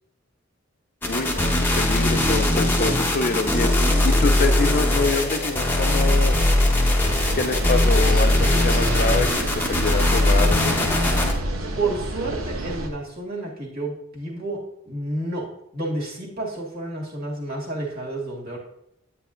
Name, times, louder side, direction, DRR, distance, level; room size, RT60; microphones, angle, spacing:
sound 1, 1.0-11.3, left 1 dB, 10° left, 0.8 m, -20 dB
voice 1, 1.1-3.7 4.0-6.3 7.3-10.9, left 3 dB, 45° left, 9 dB, 0.4 m, -26 dB
sound 2, 7.0-12.9, right 1 dB, 85° right, 0.9 m, -31 dB
voice 2, 11.8-15.5 15.7-18.6, right 2 dB, 50° right, -3 dB, 2.0 m, -30 dB
9.6 x 8.2 x 2.5 m, 0.81 s
head